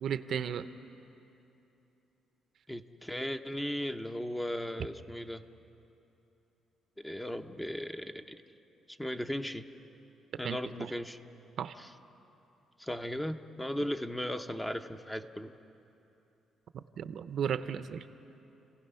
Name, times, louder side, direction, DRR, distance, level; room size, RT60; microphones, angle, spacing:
voice 1, 0.0-0.7 10.4-10.9 11.6-11.7 16.7-18.0, right 8 dB, 65° right, 12 dB, 0.7 m, -35 dB
voice 2, 2.7-5.5 7.0-8.4 8.9-9.7 10.4-11.2 11.8-11.9 12.8-15.6, equal, 10° left, 8 dB, 0.9 m, -37 dB
30.0 x 16.5 x 5.6 m, 2.9 s
cardioid pair, 90°, 0 cm